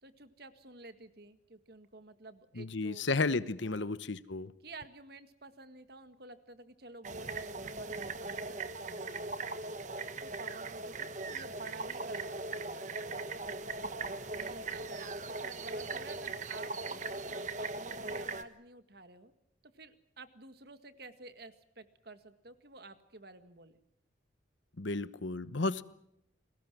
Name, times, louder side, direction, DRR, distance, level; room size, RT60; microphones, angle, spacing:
voice 1, 0.0-3.0 3.6-3.9 4.6-9.5 10.2-12.9 14.3-19.3 19.6-23.8, right 2 dB, 55° right, 10 dB, 1.9 m, -51 dB
voice 2, 2.6-4.5 24.8-25.8, left 3 dB, 75° left, 15 dB, 1.1 m, -33 dB
sound 1, 7.0-18.4, right 3 dB, 40° right, 1.3 m, -39 dB
30.0 x 21.5 x 6.2 m, 0.78 s
head